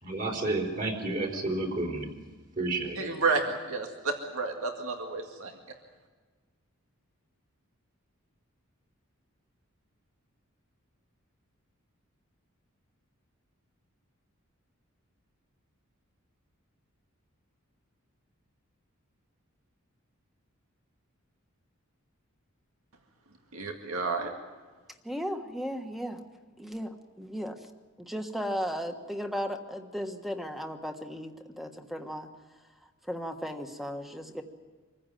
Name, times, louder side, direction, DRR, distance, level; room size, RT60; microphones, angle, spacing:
voice 1, 0.0-2.1 2.6-3.0, right 2 dB, 40° right, 1 dB, 4.0 m, -30 dB
voice 2, 3.0-5.6 23.5-24.3, right 4 dB, 90° right, 3 dB, 2.0 m, -31 dB
voice 3, 25.0-26.2 26.6-27.6 28.0-32.3 33.1-34.4, equal, ahead, 5 dB, 1.4 m, -35 dB
25.5 x 15.5 x 9.2 m, 1.4 s
head